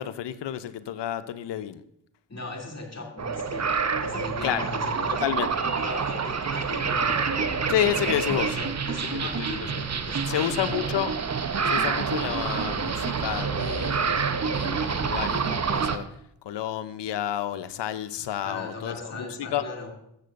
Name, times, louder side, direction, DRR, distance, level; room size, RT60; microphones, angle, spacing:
voice 1, 0.0-1.8 4.4-4.7 5.2-5.5 7.7-8.6 9.4-9.8 10.3-11.1 11.6-16.1 16.5-19.6, left 11 dB, 75° left, 14 dB, 0.6 m, -30 dB
voice 2, 2.3-5.2 5.5-7.8 8.4-10.9 18.4-19.9, left 2 dB, 35° left, -1 dB, 2.7 m, -38 dB
sound 1, 3.2-16.0, right 5 dB, 40° right, 0.9 m, -27 dB
13.5 x 7.9 x 2.5 m, 0.76 s
supercardioid pair, 40°, 42 cm